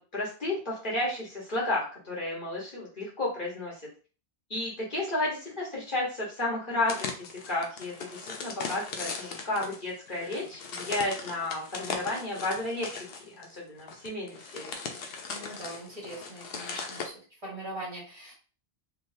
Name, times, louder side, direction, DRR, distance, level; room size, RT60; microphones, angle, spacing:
voice 1, 0.0-3.9 4.5-7.1 7.5-13.0 13.4-14.6, left 2 dB, 50° left, -5 dB, 1.4 m, -32 dB
sound 1, 6.9-17.1, left 5 dB, 65° left, 0.8 m, -39 dB
voice 2, 15.3-17.1 17.4-18.3, right 1 dB, 30° right, -5 dB, 1.5 m, -41 dB
3.4 x 2.8 x 2.7 m, 0.37 s
omnidirectional pair, 1.1 m